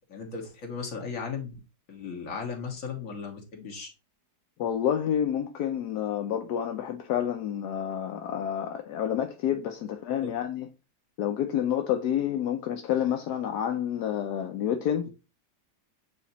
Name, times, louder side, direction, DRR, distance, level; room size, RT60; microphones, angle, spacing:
voice 1, 0.1-1.5 1.9-3.9 10.2-10.3, left 5 dB, 55° left, 1.8 m, -36 dB
voice 2, 4.6-10.7 11.2-15.1, left 9 dB, 80° left, 1.2 m, -29 dB
8.3 x 2.8 x 4.1 m
omnidirectional pair, 1.8 m